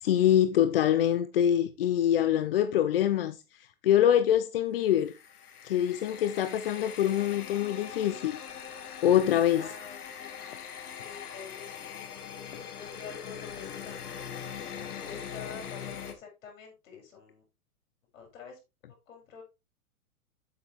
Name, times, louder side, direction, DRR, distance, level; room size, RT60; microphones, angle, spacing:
voice 1, 0.0-3.4 3.8-5.1 5.6-8.4 9.0-9.7, left 10 dB, 40° left, 0.5 m, -24 dB
sound 1, 4.9-16.1, left 8 dB, 75° left, 2.0 m, -42 dB
voice 2, 9.5-12.0 12.7-14.4 15.0-17.4 18.1-18.6 19.1-19.4, left 6 dB, 55° left, 6.3 m, -47 dB
8.8 x 8.0 x 3.4 m
hypercardioid pair, 155°, 45 cm